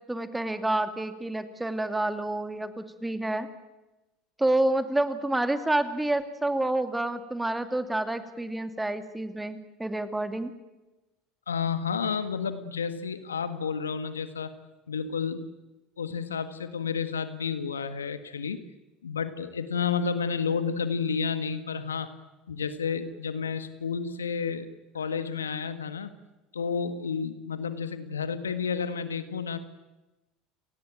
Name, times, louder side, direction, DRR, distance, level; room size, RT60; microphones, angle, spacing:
voice 1, 0.1-3.5 4.4-10.5, right 1 dB, 10° right, 9 dB, 2.5 m, -28 dB
voice 2, 11.5-14.5 14.9-15.5 16.0-18.6 19.0-22.1 22.5-24.7 24.9-26.1 26.5-29.6, left 6 dB, 80° left, 11 dB, 1.5 m, -31 dB
29.5 x 19.0 x 9.0 m, 1.1 s
figure-of-eight pair, 70°, 0 cm